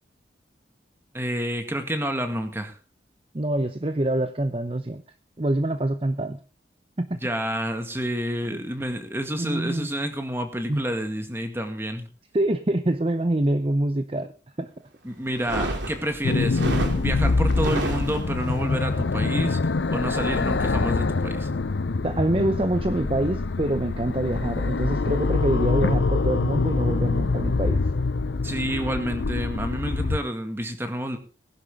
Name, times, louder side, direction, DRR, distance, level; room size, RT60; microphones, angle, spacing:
voice 1, 1.1-2.7 7.2-12.1 15.0-16.6 17.0-19.6 19.9-21.5 28.4-31.2, equal, 15° right, 2.0 m, -29 dB
voice 2, 3.3-5.0 5.4-6.4 7.0-7.2 8.5-8.6 9.4-9.9 10.7-10.8 12.3-14.3 14.6-14.7 22.0-27.8, right 1 dB, 30° right, 0.7 m, -25 dB
sound 1, 15.3-18.6, right 1 dB, 80° right, 2.9 m, -30 dB
sound 2, 16.2-30.2, left 3 dB, 80° left, 0.7 m, -25 dB
19.5 x 11.0 x 3.7 m
head